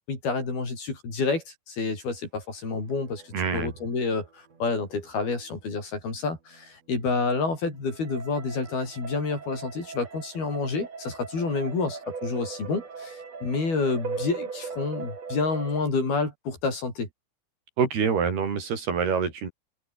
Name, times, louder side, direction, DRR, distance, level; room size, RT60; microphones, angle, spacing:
voice 1, 0.1-3.2 3.5-17.1, left 4 dB, 70° left, 10.0 m, -29 dB
sound 1, 2.7-5.5 7.9-15.8, right 5 dB, 40° right, 5.0 m, -40 dB
voice 2, 3.3-3.7 17.8-19.5, right 6 dB, 85° right, 6.8 m, -26 dB
omnidirectional pair, 4.5 m